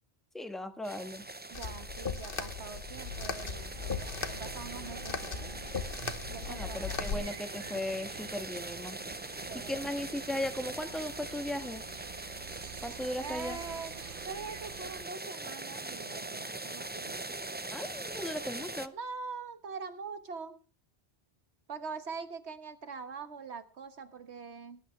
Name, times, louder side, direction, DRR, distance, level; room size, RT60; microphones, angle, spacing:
voice 1, 0.3-1.2 6.4-9.0 9.5-11.8 12.8-13.6 17.7-18.9, left 1 dB, ahead, 7 dB, 1.4 m, -37 dB
sound 1, 0.8-18.9, right 2 dB, 15° right, 0.4 m, -42 dB
sound 2, 1.5-7.2, left 5 dB, 55° left, 1.3 m, -38 dB
voice 2, 1.5-5.6 6.3-7.1 9.5-9.9 13.2-13.9 14.2-17.2 18.9-20.6 21.7-24.8, right 5 dB, 85° right, 10 dB, 1.6 m, -43 dB
sound 3, 2.9-15.1, right 8 dB, 55° right, 0.9 m, -48 dB
18.5 x 11.0 x 3.2 m, 0.37 s
omnidirectional pair, 1.1 m